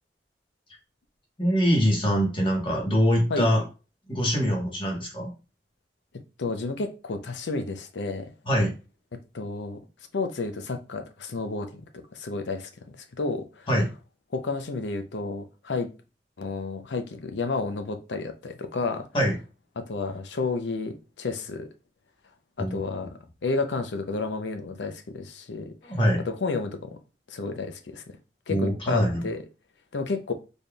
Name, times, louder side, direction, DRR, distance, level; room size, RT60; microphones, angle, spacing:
voice 1, 1.4-3.6 4.1-5.3 8.5-8.7 13.7-13.9 19.1-19.3 22.6-22.8 25.9-26.2 28.5-29.2, equal, 30° left, -1 dB, 1.2 m, -23 dB
voice 2, 6.4-8.3 9.1-9.8 10.1-11.7 12.1-12.7 13.0-13.7 14.3-15.9 16.4-19.1 19.8-21.7 22.6-25.9 26.3-27.0 27.3-28.0 28.5-29.4 29.9-30.3, left 3 dB, 80° left, 7 dB, 0.6 m, -31 dB
4.1 x 3.4 x 2.3 m, 0.32 s
head